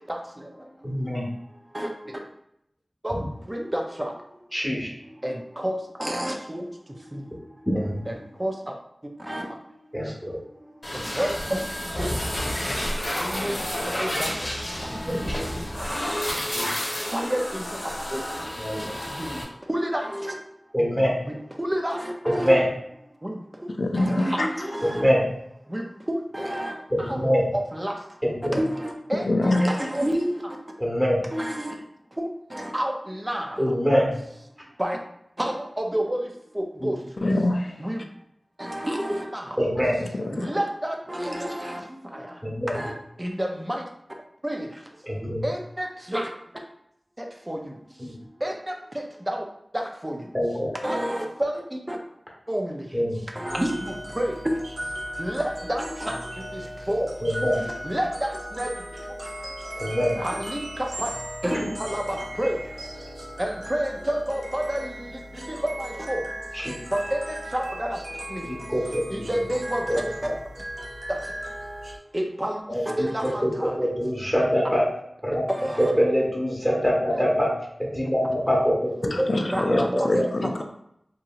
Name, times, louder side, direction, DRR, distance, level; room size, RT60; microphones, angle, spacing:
voice 1, 0.1-1.0 1.5-2.2 3.0-4.5 5.2-7.7 8.1-8.7 9.2-9.8 10.5-11.6 12.0-18.6 18.9-20.4 21.3-22.5 23.2-23.7 24.0-25.0 25.7-28.2 28.5-30.6 31.3-31.9 32.1-33.7 34.8-35.0 35.4-37.2 37.8-38.1 38.6-39.6 40.3-42.4 42.7-42.9 43.2-43.9 44.4-44.9 45.4-46.3 47.2-49.4 49.7-50.3 50.8-52.0 52.5-53.0 53.3-57.2 57.8-59.9 60.2-61.1 61.4-62.7 63.4-68.6 69.1-69.9 71.1-71.2 72.1-73.9 75.5-75.9 77.1-77.2 79.4-80.2, equal, 20° right, 2 dB, 0.4 m, -31 dB
voice 2, 0.8-1.3 4.5-4.9 7.7-7.9 9.9-10.4 16.5-16.7 18.6-18.9 20.7-21.1 22.4-22.7 24.8-25.2 26.9-27.4 28.2-28.6 30.8-31.2 33.6-34.1 36.8-36.9 39.6-40.0 42.4-42.8 45.0-45.4 48.0-48.2 50.3-50.7 52.9-53.2 57.2-57.6 59.8-60.2 61.4-61.6 66.5-66.8 68.5-69.3 69.9-70.0 72.7-73.5 73.8-74.9 75.2-75.4 75.8-77.5 77.8-79.1 79.7-80.2, equal, ahead, -4 dB, 0.9 m, -24 dB
sound 1, 10.8-19.4, equal, 50° left, 0.8 m, -30 dB
voice 3, 23.7-24.7 29.2-29.7 37.2-37.9 40.2-40.6 79.1-80.6, left 2 dB, 70° left, 4 dB, 0.3 m, -25 dB
sound 2, 53.5-72.0, equal, 80° right, 0.5 m, -37 dB
2.8 x 2.7 x 2.3 m, 0.74 s
wide cardioid pair, 55°, 0 cm